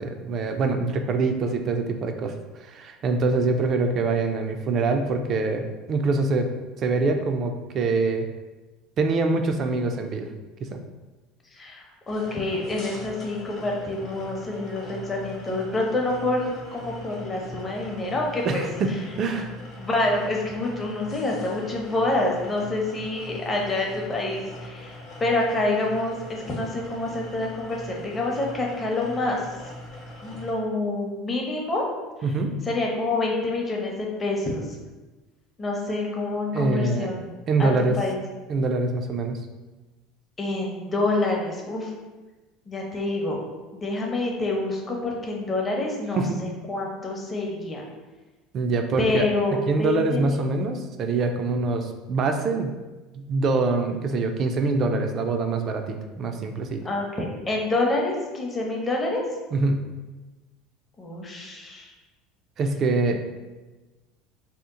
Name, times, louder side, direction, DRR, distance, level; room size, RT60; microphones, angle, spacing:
voice 1, 0.0-2.3 2.6-6.5 6.8-8.3 9.0-10.3 10.6-10.8 18.5-19.6 32.2-32.6 36.5-37.1 37.5-38.0 38.5-39.4 46.2-46.4 48.5-49.3 49.5-52.7 53.2-56.8 59.5-59.8 62.6-63.3, right 3 dB, 40° right, 6 dB, 0.4 m, -24 dB
voice 2, 11.6-18.6 19.8-25.0 25.2-29.4 30.2-31.8 32.7-34.6 35.6-37.3 37.6-38.2 40.4-41.9 42.7-43.4 43.7-47.9 49.0-50.4 56.8-59.2 61.0-61.9, left 2 dB, 20° left, -1 dB, 0.7 m, -27 dB
sound 1, 12.1-30.5, left 1 dB, 55° left, 0.9 m, -41 dB
2.8 x 2.0 x 3.6 m, 1.2 s
supercardioid pair, 115°, 0 cm